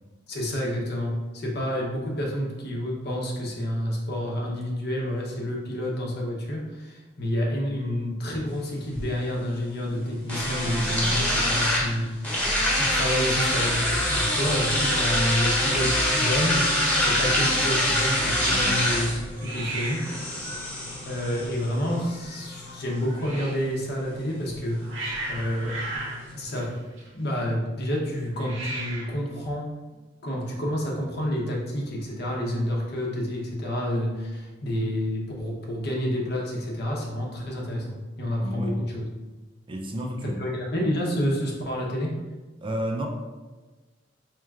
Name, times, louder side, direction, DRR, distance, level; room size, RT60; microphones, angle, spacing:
voice 1, 0.3-19.1 19.4-20.0 21.0-24.8 25.3-25.7 26.3-26.7 27.1-29.7 30.2-39.0 40.2-42.1, equal, 60° left, -2 dB, 0.9 m, -29 dB
sound 1, 8.4-26.4, left 1 dB, 10° left, 1.1 m, -27 dB
sound 2, 12.4-23.8, equal, 25° left, 1.1 m, -41 dB
Hiss, 14.1-14.4 14.7-15.1 15.4-15.5 15.7-16.4 19.4-23.7 24.4-27.4 28.3-29.2, right 2 dB, 80° right, 0.9 m, -38 dB
voice 2, 38.4-38.8 39.7-40.4 42.6-43.1, equal, 25° right, 1 dB, 0.4 m, -31 dB
4.6 x 3.1 x 2.4 m, 1.2 s
head